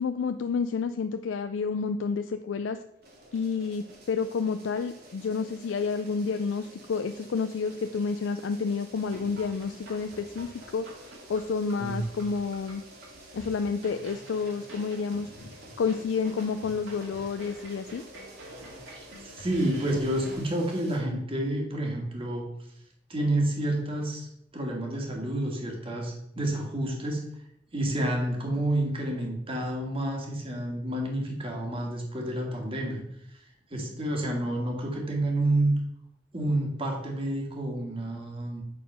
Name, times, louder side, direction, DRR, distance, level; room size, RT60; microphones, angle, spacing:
voice 1, 0.0-2.8 3.3-12.8 13.3-18.0, left 5 dB, 80° left, 8 dB, 0.4 m, -30 dB
sound 1, 3.0-21.0, right 1 dB, 55° right, 2.1 m, -51 dB
sound 2, 9.0-20.4, right 1 dB, 75° right, 2.5 m, -48 dB
voice 2, 18.9-22.5 23.1-24.3 24.5-27.4 27.7-33.0 33.3-33.4 33.7-35.7 36.3-38.6, right 1 dB, 30° right, 0 dB, 1.8 m, -29 dB
7.4 x 4.3 x 5.5 m, 0.75 s
head